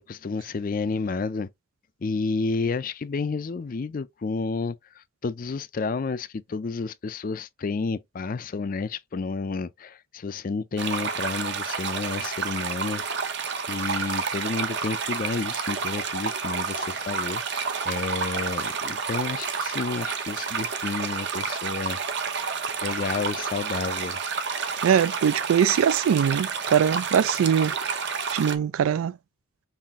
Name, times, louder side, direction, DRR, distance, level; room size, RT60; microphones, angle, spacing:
voice 1, 0.1-1.5 2.0-13.0 13.7-17.4 17.8-22.2 22.8-24.2, left 4 dB, 40° left, 0.4 m, -30 dB
sound 1, 10.8-28.6, right 5 dB, 55° right, 0.8 m, -30 dB
voice 2, 24.8-27.7 28.3-29.2, right 8 dB, 80° right, 0.3 m, -22 dB
5.7 x 2.6 x 3.5 m
head